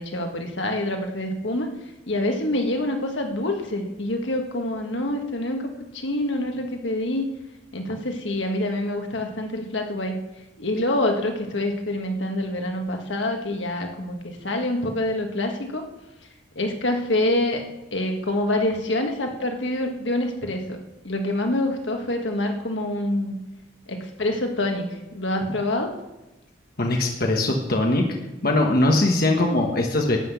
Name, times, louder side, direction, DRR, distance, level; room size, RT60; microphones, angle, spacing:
voice 1, 0.0-1.7 2.1-7.3 7.7-10.1 10.6-15.8 16.6-17.6 17.9-23.3 23.9-25.9, left 1 dB, 75° left, 3 dB, 1.6 m, -26 dB
voice 2, 26.8-28.1 28.4-30.2, left 2 dB, 50° left, 1 dB, 1.3 m, -21 dB
12.0 x 5.9 x 8.2 m, 1.0 s
head